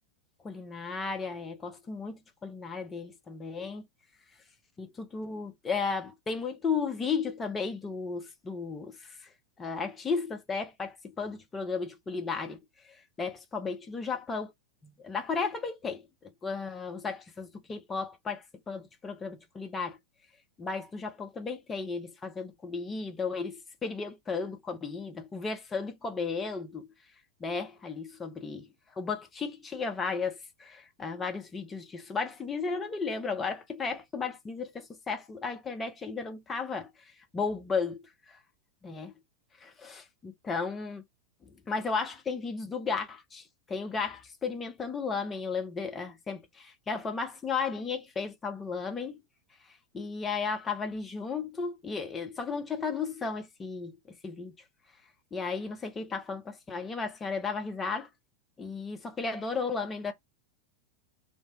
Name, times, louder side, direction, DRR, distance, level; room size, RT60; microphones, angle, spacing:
voice 1, 0.4-3.8 4.8-9.2 9.6-12.6 13.2-14.5 15.0-16.1 16.4-20.0 20.6-26.9 27.4-28.7 29.0-36.9 37.3-38.0 38.8-39.1 39.6-41.0 41.5-49.2 49.9-54.5 55.3-58.1 58.6-60.1, left 5 dB, 15° left, 0.7 m, -34 dB
2.6 x 2.1 x 3.5 m
figure-of-eight pair, 90°, 0 cm